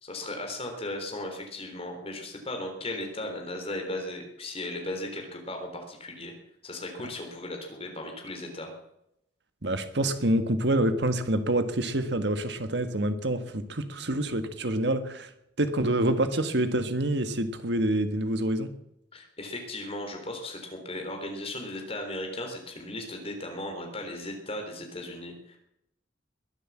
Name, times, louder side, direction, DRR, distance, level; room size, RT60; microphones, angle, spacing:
voice 1, 0.0-6.3 6.6-8.7 19.1-25.6, left 1 dB, 30° left, 3 dB, 3.6 m, -36 dB
voice 2, 9.6-15.3 15.6-18.7, right 1 dB, 65° right, 9 dB, 1.6 m, -27 dB
21.5 x 8.3 x 7.4 m, 0.80 s
head